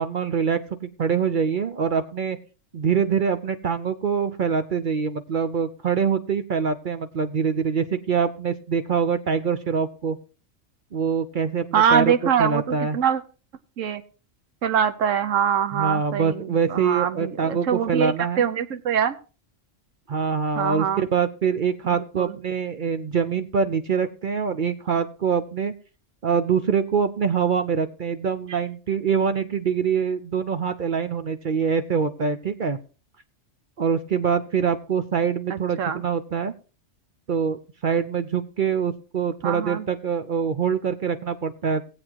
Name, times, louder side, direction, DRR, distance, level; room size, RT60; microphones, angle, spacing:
voice 1, 0.0-2.4 2.7-10.2 10.9-12.1 12.4-13.0 15.7-18.4 20.1-25.7 26.2-32.8 33.8-36.5 37.3-41.8, right 6 dB, 50° right, 10 dB, 0.7 m, -24 dB
voice 2, 11.7-13.2 13.8-14.0 14.6-19.2 20.5-21.1 21.8-22.4 28.5-28.6 35.5-36.0 39.4-39.9, right 8 dB, 80° right, 11 dB, 1.2 m, -24 dB
18.5 x 7.9 x 2.9 m, 0.35 s
omnidirectional pair, 1.3 m